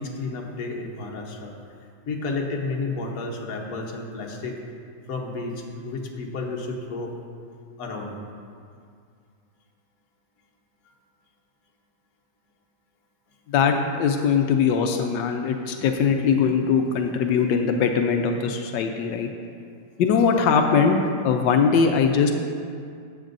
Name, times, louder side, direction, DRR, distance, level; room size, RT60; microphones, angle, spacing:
voice 1, 0.0-1.5 2.1-4.6 5.1-7.1 7.8-8.1, left 3 dB, 55° left, 0 dB, 1.4 m, -31 dB
voice 2, 13.5-19.3 20.0-21.0 21.2-22.3, left 6 dB, 90° left, 4 dB, 1.3 m, -21 dB
13.5 x 8.5 x 2.6 m, 2.3 s
omnidirectional pair, 1.9 m